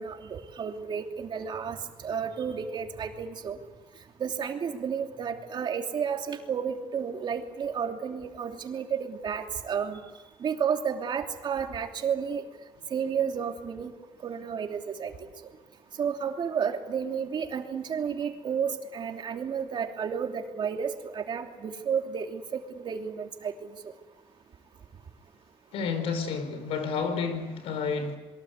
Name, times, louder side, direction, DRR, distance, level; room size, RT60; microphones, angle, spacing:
voice 1, 0.0-1.8 2.0-3.6 4.2-10.0 10.4-12.4 12.9-13.9 14.2-15.1 16.0-23.5, right 7 dB, 55° right, 3.0 m, -31 dB
voice 2, 25.7-28.2, left 5 dB, 90° left, 4.7 m, -30 dB
27.5 x 23.0 x 8.2 m
cardioid pair, 110°, 10 cm